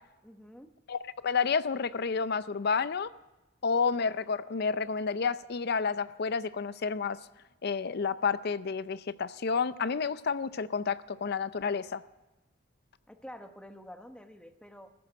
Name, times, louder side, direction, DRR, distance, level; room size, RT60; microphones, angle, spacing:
voice 1, 0.2-0.7 13.1-14.9, equal, 5° left, 7 dB, 1.0 m, -48 dB
voice 2, 0.9-3.1 3.6-7.2 7.6-12.0, left 5 dB, 55° left, 16 dB, 0.5 m, -30 dB
14.0 x 11.0 x 7.7 m, 1.0 s
head